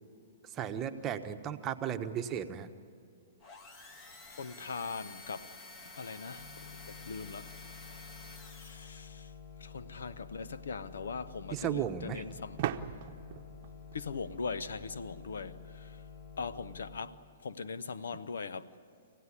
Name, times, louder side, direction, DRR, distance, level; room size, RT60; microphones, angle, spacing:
voice 1, 0.4-2.7 11.5-12.2, right 9 dB, 25° right, 1.1 m, -35 dB
sound 1, 3.4-9.2, left 2 dB, 25° left, 1.9 m, -51 dB
voice 2, 4.3-5.5 6.0-7.5 8.4-9.3 9.6-12.6 13.9-16.0 16.4-18.7, left 5 dB, 85° left, 0.8 m, -41 dB
sound 2, 6.4-17.0, left 6 dB, 45° left, 4.7 m, -50 dB
sound 3, 12.6-15.2, right 11 dB, 45° right, 0.9 m, -40 dB
25.0 x 16.5 x 9.9 m
hypercardioid pair, 135°, 0 cm